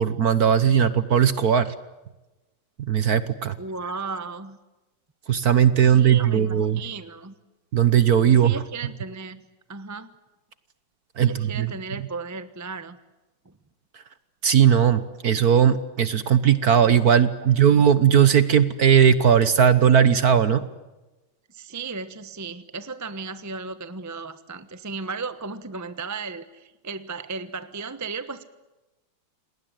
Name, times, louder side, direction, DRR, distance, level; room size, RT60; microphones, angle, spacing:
voice 1, 0.0-1.7 2.9-3.5 5.3-6.8 7.7-8.5 11.2-11.7 14.4-20.6, right 8 dB, 50° right, 14 dB, 1.4 m, -18 dB
voice 2, 3.6-4.6 5.8-7.3 8.3-9.4 9.7-10.1 11.2-13.0 13.4-13.5 21.5-28.4, right 4 dB, 15° right, 12 dB, 0.7 m, -35 dB
28.5 x 19.5 x 9.1 m, 1.1 s
omnidirectional pair, 2.4 m